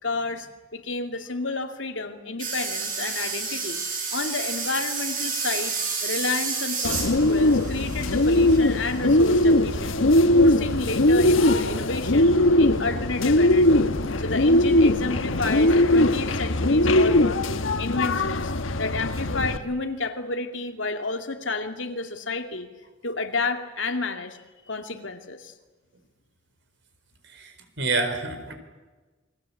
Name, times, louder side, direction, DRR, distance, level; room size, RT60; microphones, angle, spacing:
voice 1, 0.0-3.8 4.1-5.7 6.0-10.0 10.3-13.9 14.2-17.4 17.8-18.5 18.8-22.7 23.0-24.4 24.6-25.5, left 3 dB, 70° left, 6 dB, 2.5 m, -31 dB
sound 1, 2.4-9.4 10.9-11.0, right 5 dB, 45° right, 7.7 m, -31 dB
Bird, 6.8-19.6, left 1 dB, 90° left, 1.3 m, -20 dB
voice 2, 27.8-28.5, right 3 dB, 65° right, 7 dB, 4.4 m, -27 dB
29.0 x 22.0 x 8.6 m, 1.2 s
head